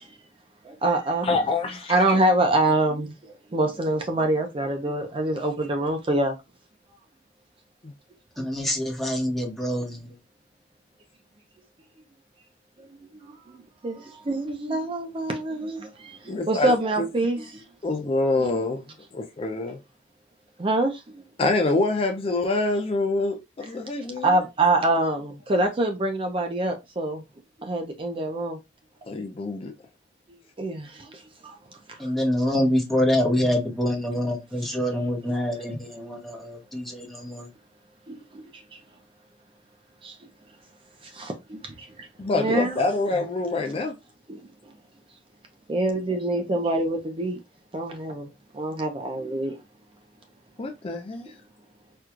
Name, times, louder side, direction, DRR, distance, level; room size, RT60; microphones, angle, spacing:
voice 1, 0.6-1.3 1.9-6.4 12.8-12.9 13.5-17.7 18.4-18.5 20.6-21.2 23.6-23.7 24.2-27.2 27.6-28.6 30.6-31.6 31.9-32.1 38.1-38.8 40.0-40.2 41.0-42.1 42.3-42.8 44.3-44.4 45.7-47.4 47.7-48.3 48.5-49.6, right 2 dB, 30° right, 0.5 m, -26 dB
voice 2, 1.2-1.9 16.3-17.1 17.8-18.8 19.1-19.8 21.4-24.3 29.1-29.7 42.2-44.0 50.6-51.3, left 2 dB, 30° left, 0.4 m, -26 dB
voice 3, 8.4-10.1 32.0-37.5, left 1 dB, ahead, 1.1 m, -26 dB
4.4 x 2.4 x 2.4 m
head